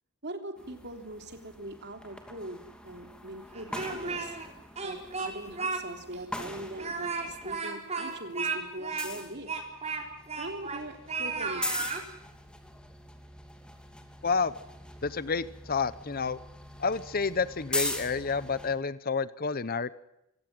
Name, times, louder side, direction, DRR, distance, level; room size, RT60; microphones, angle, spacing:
voice 1, 0.2-4.4 4.8-9.6 10.4-11.9, right 1 dB, 50° right, 6 dB, 3.4 m, -41 dB
sound 1, 0.6-7.6 7.9-18.7, left 1 dB, 5° left, 2.7 m, -41 dB
Speech, 3.5-4.5 4.8-5.8 6.1-6.2 6.7-10.8 11.1-12.0, right 4 dB, 30° right, 4.4 m, -34 dB
voice 2, 14.2-14.6 15.0-16.4 16.8-20.0, left 5 dB, 45° left, 16 dB, 0.8 m, -29 dB
26.0 x 16.5 x 7.7 m, 0.86 s
head